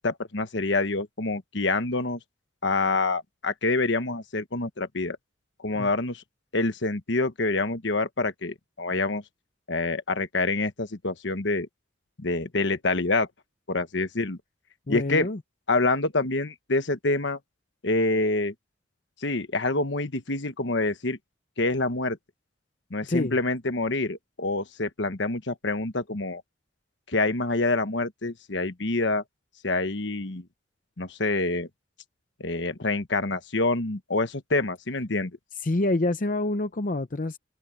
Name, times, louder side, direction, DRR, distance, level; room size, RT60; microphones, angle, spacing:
voice 1, 0.0-2.2 2.6-5.2 5.6-6.2 6.5-9.2 9.7-11.7 12.2-13.3 13.7-14.4 14.9-15.3 15.7-17.4 17.8-18.5 19.2-21.2 21.6-22.2 22.9-26.4 27.1-29.2 29.6-30.4 31.0-31.7 32.4-35.3, left 2 dB, 65° left, 1.3 m, -26 dB
voice 2, 14.9-15.4 23.1-23.4 35.6-37.4, left 2 dB, 45° left, 0.7 m, -26 dB
head